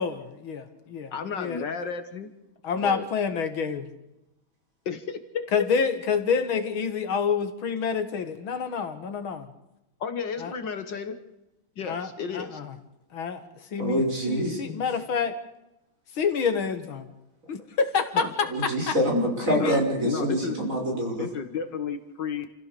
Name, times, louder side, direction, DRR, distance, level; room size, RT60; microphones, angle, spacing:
voice 1, 0.0-1.7 2.6-3.9 5.5-9.5 10.4-10.5 11.8-12.7 13.1-15.3 16.1-17.1 17.5-19.0 19.5-19.8, left 6 dB, 80° left, 9 dB, 2.4 m, -28 dB
voice 2, 1.1-2.3 2.8-3.1 4.9-5.5 10.0-11.2 11.8-12.6 18.1-18.3 19.5-20.6 21.2-22.5, left 6 dB, 60° left, 10 dB, 2.0 m, -33 dB
voice 3, 13.8-14.8 18.5-21.3, equal, 40° right, 0 dB, 6.1 m, -26 dB
28.5 x 16.0 x 6.9 m, 0.93 s
omnidirectional pair, 2.2 m